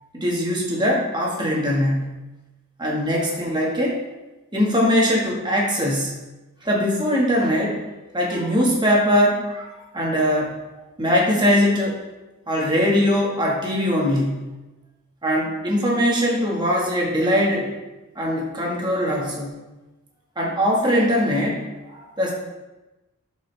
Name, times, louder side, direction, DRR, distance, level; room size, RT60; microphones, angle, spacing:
voice 1, 0.1-2.1 2.8-4.0 4.5-6.2 6.6-7.9 8.1-10.6 11.0-12.0 12.5-14.5 15.2-17.7 18.1-19.5 20.3-21.6 21.9-22.3, equal, 20° right, -2 dB, 1.7 m, -21 dB
12.5 x 5.3 x 3.4 m, 1.1 s
head